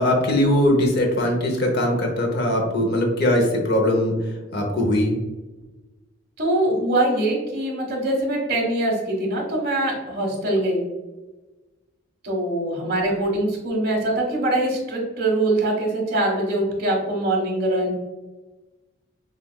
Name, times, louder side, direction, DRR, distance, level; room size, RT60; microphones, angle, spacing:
voice 1, 0.0-4.1 4.5-5.2, left 1 dB, 55° left, 1 dB, 0.8 m, -20 dB
voice 2, 6.4-10.8 12.2-17.9, right 1 dB, 50° right, -2 dB, 1.3 m, -23 dB
5.8 x 2.5 x 2.3 m, 1.2 s
head